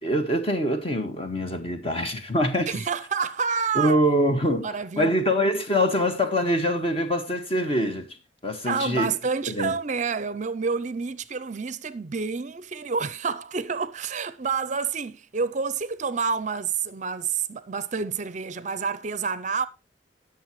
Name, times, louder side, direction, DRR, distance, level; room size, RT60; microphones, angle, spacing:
voice 1, 0.0-2.7 3.8-8.2 8.4-9.1 9.5-9.7, equal, 30° left, 1.7 m, -24 dB
voice 2, 2.7-4.0 4.5-5.2 8.7-19.7, right 5 dB, 40° right, 0.5 m, -28 dB
19.5 x 6.5 x 3.1 m
head